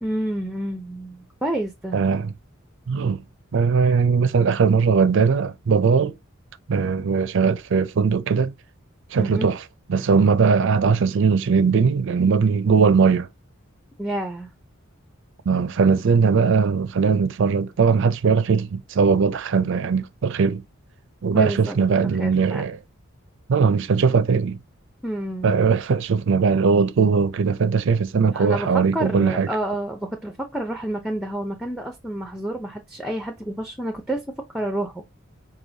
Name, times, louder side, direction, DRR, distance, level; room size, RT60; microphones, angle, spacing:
voice 1, 0.0-2.0 9.2-9.5 14.0-14.5 21.3-21.8 22.1-22.7 25.0-25.6 28.3-34.2 34.5-35.0, right 1 dB, ahead, 0.5 m, -29 dB
voice 2, 1.9-2.3 2.9-3.2 3.5-6.1 6.7-8.5 9.1-9.6 9.9-13.3 15.5-20.6 21.2-22.8 23.5-24.6 25.4-29.5, right 5 dB, 60° right, 0.4 m, -19 dB
4.7 x 2.8 x 2.7 m
head